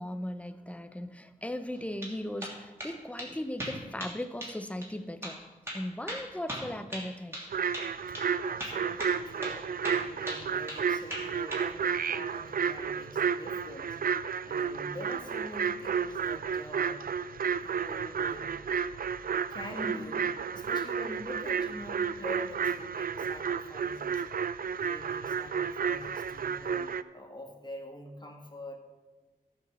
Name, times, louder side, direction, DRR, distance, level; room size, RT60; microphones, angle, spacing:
voice 1, 0.0-5.4 5.7-7.4, left 1 dB, 10° left, 10 dB, 0.7 m, -37 dB
sound 1, 1.7-2.1 2.4-2.9 3.2-3.3 3.6-4.2 4.4-4.6 4.8-4.9 5.2-5.4 5.7-7.5 7.7-8.3 8.6-9.2 9.4-9.6 9.8-10.8 11.1-11.7, equal, 15° right, 2.8 m, -38 dB
sound 2, 7.5-27.0, right 6 dB, 70° right, 0.4 m, -32 dB
voice 2, 8.4-9.6 10.0-17.1 17.6-18.9 19.5-24.3 24.8-28.8, left 1 dB, 30° left, 2 dB, 1.8 m, -45 dB
14.5 x 5.5 x 6.3 m, 1.2 s
wide cardioid pair, 95°, 15 cm